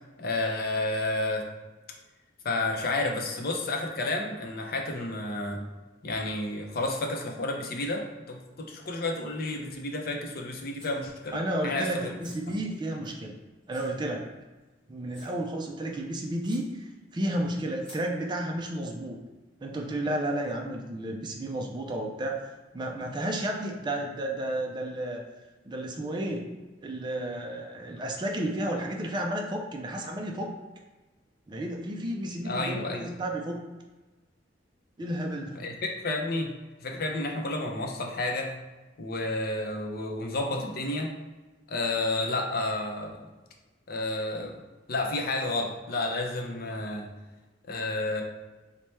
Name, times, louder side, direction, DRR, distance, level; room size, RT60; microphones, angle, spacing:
voice 1, 0.2-1.5 2.4-5.6 6.0-12.1 12.5-12.6 32.4-33.1 35.6-36.5 36.8-38.5 39.0-41.1 41.7-43.3 43.9-44.6 44.9-47.1 47.7-48.2, left 2 dB, 55° left, 1 dB, 0.6 m, -31 dB
sound 1, 10.7-11.3 12.2-13.2 13.7-13.9 14.6-14.7 15.1-15.4 16.0-16.1 16.4-16.7 17.8-18.1, equal, 5° left, 1.1 m, -51 dB
voice 2, 11.3-13.3 13.7-14.2 14.9-19.2 19.6-22.4 22.7-25.2 25.6-26.5 26.8-30.5 31.5-33.6 35.0-35.6, right 1 dB, 25° right, 1 dB, 0.3 m, -32 dB
3.2 x 2.1 x 4.2 m, 1.2 s
head